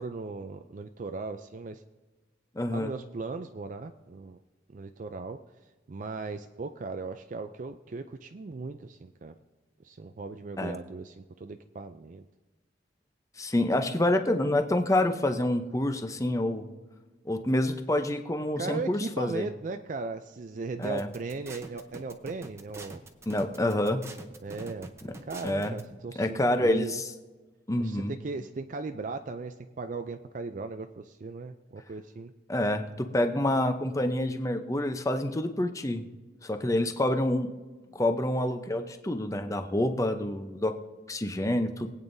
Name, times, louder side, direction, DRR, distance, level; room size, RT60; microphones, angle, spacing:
voice 1, 0.0-1.8 2.7-4.4 4.7-5.4 5.9-9.4 9.8-12.3 18.6-23.0 24.4-24.9 25.2-27.0 27.8-32.3, right 3 dB, 45° right, 8 dB, 0.4 m, -37 dB
voice 2, 2.6-2.9 10.6-10.8 13.4-16.7 17.3-19.5 20.8-21.1 23.3-24.0 25.4-25.8 26.2-27.1 27.7-28.1 32.5-36.0 36.4-37.5 37.9-40.7 41.1-41.9, left 1 dB, 15° left, 7 dB, 0.7 m, -27 dB
sound 1, 20.8-25.8, right 2 dB, 15° right, 0.8 m, -44 dB
23.0 x 8.9 x 2.7 m, 1.2 s
head